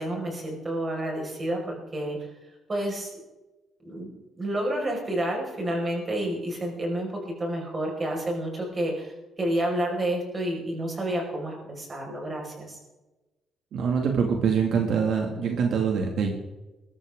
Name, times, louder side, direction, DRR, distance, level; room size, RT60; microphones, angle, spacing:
voice 1, 0.0-2.3 2.7-3.1 3.8-9.1 9.4-12.8, right 1 dB, 25° right, 0 dB, 5.3 m, -30 dB
voice 2, 13.7-16.3, right 6 dB, 65° right, 2 dB, 2.2 m, -24 dB
21.0 x 13.5 x 3.7 m, 1.1 s
cardioid pair, 155°, 0 cm